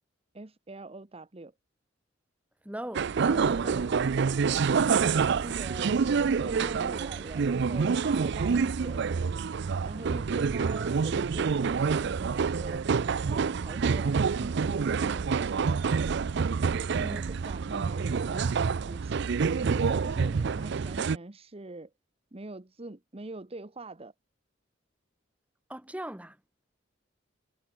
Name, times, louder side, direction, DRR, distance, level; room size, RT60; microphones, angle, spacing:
voice 1, 0.3-1.5 5.0-9.1 9.8-15.8 17.0-19.2 19.6-21.9 22.3-24.1, right 2 dB, 30° right, 1.0 m, -43 dB
voice 2, 2.6-4.0 17.0-17.3 25.7-26.4, right 1 dB, 5° right, 1.5 m, -40 dB
sound 1, 2.9-21.2, right 5 dB, 60° right, 0.5 m, -27 dB
head